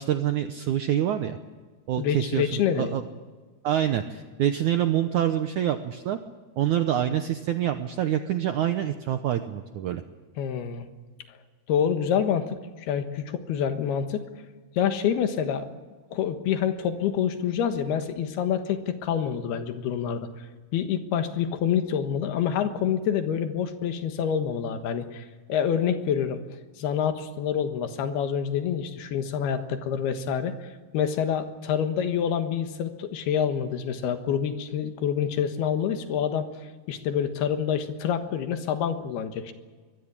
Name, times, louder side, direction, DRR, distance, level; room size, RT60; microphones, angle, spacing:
voice 1, 0.0-1.4 1.9-3.0 3.6-6.2 6.6-10.0, right 11 dB, 80° right, 8 dB, 1.8 m, -26 dB
voice 2, 2.0-3.0 10.4-10.9 11.7-14.2 14.8-15.7 16.1-20.3 20.7-26.4 26.8-30.6 30.9-36.5 36.9-39.5, left 8 dB, 75° left, 8 dB, 3.4 m, -27 dB
23.5 x 17.5 x 8.8 m, 1.5 s
omnidirectional pair, 4.7 m